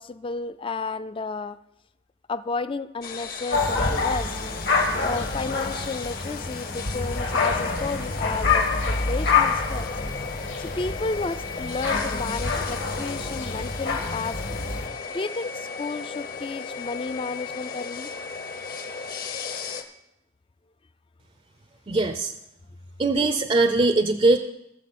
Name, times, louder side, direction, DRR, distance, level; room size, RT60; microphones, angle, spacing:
voice 1, 0.0-1.6 2.3-4.4 5.0-9.9 10.6-14.6 15.1-18.1, left 3 dB, 25° left, 14 dB, 0.4 m, -32 dB
sound 1, 3.0-19.8, left 5 dB, 50° left, 1.0 m, -36 dB
sound 2, 3.5-14.9, left 4 dB, 70° left, 1.9 m, -27 dB
voice 2, 21.9-22.3 23.0-24.4, right 2 dB, 30° right, 8 dB, 0.5 m, -21 dB
19.0 x 6.9 x 4.2 m, 0.85 s
head